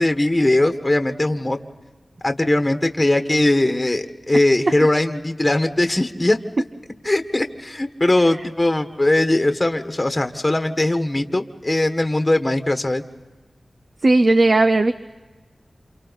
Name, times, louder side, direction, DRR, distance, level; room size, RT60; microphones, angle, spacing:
voice 1, 0.0-1.6 2.2-6.4 7.0-13.0, left 1 dB, 25° left, 7 dB, 1.4 m, -20 dB
voice 2, 14.0-14.9, right 2 dB, 55° right, 9 dB, 0.7 m, -15 dB
29.5 x 28.0 x 4.1 m, 1.3 s
wide cardioid pair, 65°, 0 cm